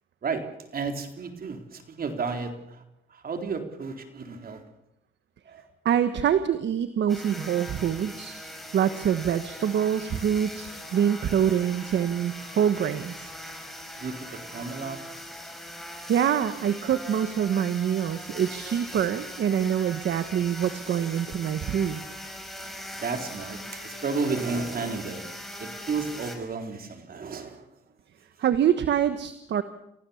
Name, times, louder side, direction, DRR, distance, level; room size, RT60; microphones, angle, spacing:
voice 1, 0.2-2.8 3.1-4.6 5.5-5.6 14.0-15.0 23.0-25.3 25.6-27.6, right 4 dB, 50° right, 5 dB, 4.0 m, -32 dB
voice 2, 5.8-8.4 8.7-13.3 16.0-22.0 28.4-29.6, right 9 dB, 65° right, 11 dB, 1.3 m, -25 dB
sound 1, 7.1-26.4, left 1 dB, ahead, 5.5 m, -40 dB
29.5 x 16.0 x 7.2 m, 0.85 s
cardioid pair, 90°, 20 cm